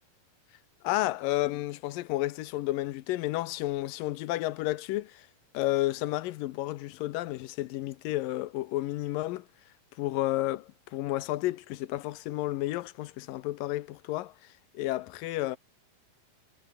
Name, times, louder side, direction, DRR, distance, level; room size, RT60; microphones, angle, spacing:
voice 1, 0.8-5.3 5.5-9.5 10.0-14.3 14.7-15.6, left 16 dB, 75° left, 2.3 m, -31 dB
omnidirectional pair, 4.3 m